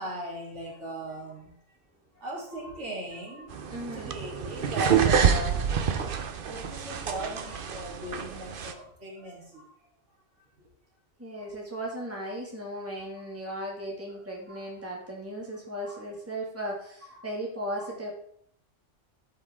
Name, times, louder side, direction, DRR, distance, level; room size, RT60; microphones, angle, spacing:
voice 1, 0.0-1.5 2.2-3.5 3.9-9.6 14.5-14.6 15.8-16.0 17.1-17.2 17.7-17.9, right 1 dB, 70° right, -4 dB, 3.4 m, -38 dB
sound 1, 3.5-8.7, right 7 dB, 50° right, 0.8 m, -27 dB
voice 2, 3.7-4.1 11.2-18.1, right 1 dB, 10° right, -2 dB, 2.1 m, -36 dB
12.5 x 5.7 x 3.6 m, 0.64 s
omnidirectional pair, 1.3 m